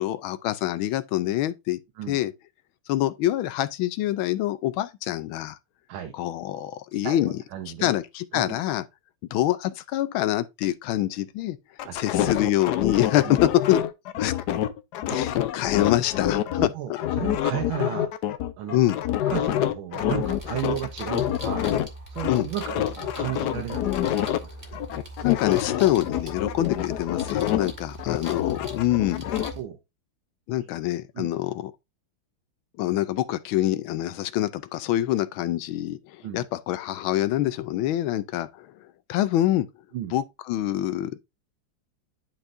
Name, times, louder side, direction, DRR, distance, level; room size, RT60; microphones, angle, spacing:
voice 1, 0.0-1.8 2.1-2.3 2.9-5.6 6.2-7.3 7.8-8.8 9.3-11.6 11.9-13.8 14.2-14.3 15.1-16.6 18.7-19.0 22.3-22.5 25.2-29.2 30.5-31.7 32.8-36.0 36.3-38.7 39.1-39.7 40.1-41.2, left 14 dB, 85° left, 1.5 m, -25 dB
voice 2, 7.0-7.9 8.3-8.6 11.9-12.0 12.3-12.4 13.2-13.3 15.1-15.2 16.6-18.1 18.6-18.8 19.3-21.7 22.1-24.5 26.6-26.7 29.6-29.8 31.2-31.3 36.2-36.4 39.9-40.2, right 11 dB, 90° right, 1.7 m, -34 dB
sound 1, 11.8-16.7 17.0-21.9 22.2-24.4 24.7-27.7 28.0-29.5, left 12 dB, 70° left, 1.0 m, -27 dB
sound 2, 20.2-29.6, right 1 dB, 20° right, 1.6 m, -41 dB
11.0 x 4.4 x 2.6 m
omnidirectional pair, 2.2 m